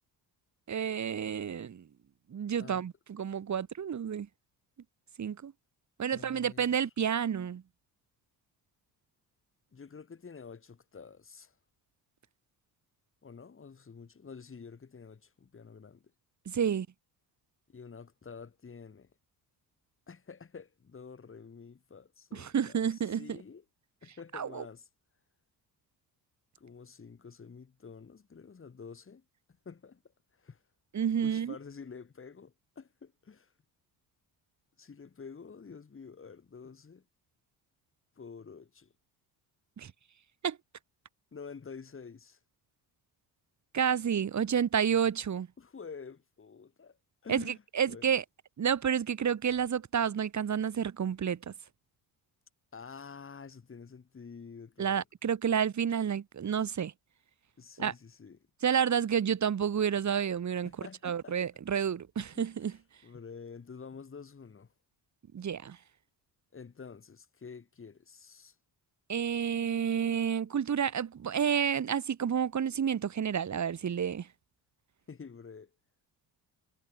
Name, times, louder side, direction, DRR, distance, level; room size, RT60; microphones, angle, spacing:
voice 1, 0.7-1.9 2.3-4.3 5.2-5.5 6.0-7.6 16.5-16.9 22.3-23.4 24.3-24.6 30.9-31.5 39.8-39.9 40.4-40.6 43.7-45.5 47.3-48.2 48.6-51.5 54.8-56.9 57.8-57.9 58.6-60.7 61.0-62.7 65.3-65.8 69.1-74.3, right 8 dB, 45° right, 4.0 m, -30 dB
voice 2, 6.1-6.7 9.7-11.6 13.2-16.0 17.7-19.1 20.1-23.6 24.0-24.9 26.6-29.2 29.7-30.0 30.3-30.6 31.2-33.5 34.8-37.0 38.2-38.9 41.3-42.4 45.6-47.0 47.2-48.1 52.7-55.0 57.6-58.4 60.6-61.4 62.3-62.5 63.0-64.7 66.5-68.6 75.1-75.7, left 5 dB, 30° left, 7.6 m, -48 dB
cardioid pair, 115°, 40 cm